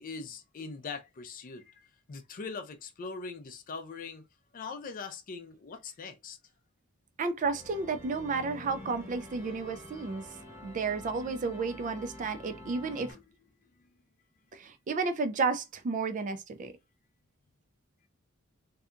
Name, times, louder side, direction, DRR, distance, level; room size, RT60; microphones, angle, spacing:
voice 1, 0.0-4.2 4.5-6.4 13.1-13.2, left 4 dB, 40° left, 0.4 m, -42 dB
voice 2, 7.2-10.3 10.6-13.1 14.5-16.7, right 4 dB, 40° right, 0.3 m, -32 dB
sound 1, 7.4-13.1, left 1 dB, 10° right, 0.9 m, -47 dB
2.7 x 2.2 x 2.4 m
head